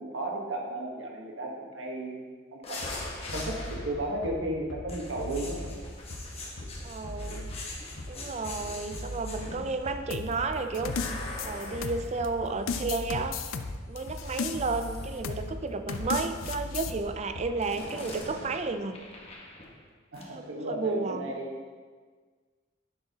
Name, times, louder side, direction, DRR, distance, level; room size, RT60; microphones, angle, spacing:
voice 1, 0.0-2.2 2.5-2.8 3.3-5.7 20.1-21.5, right 1 dB, 70° right, 0 dB, 1.3 m, -34 dB
sound 1, 2.6-4.2 4.9-9.9 10.9-13.0 14.0-15.2 15.9-16.3 17.6-19.9 20.1-20.3, left 2 dB, 30° left, 1.2 m, -43 dB
Bass drum, 2.8-17.8, equal, 60° left, 1.1 m, -40 dB
voice 2, 6.8-7.5 8.1-11.0 11.4-13.4 13.9-19.0 20.2-21.3, right 3 dB, 35° right, 8 dB, 0.4 m, -32 dB
sound 2, 10.1-12.3 12.7-14.9 15.2-15.5 15.9-16.9, left 5 dB, 90° left, 0.5 m, -34 dB
10.5 x 6.9 x 2.9 m, 1.5 s
head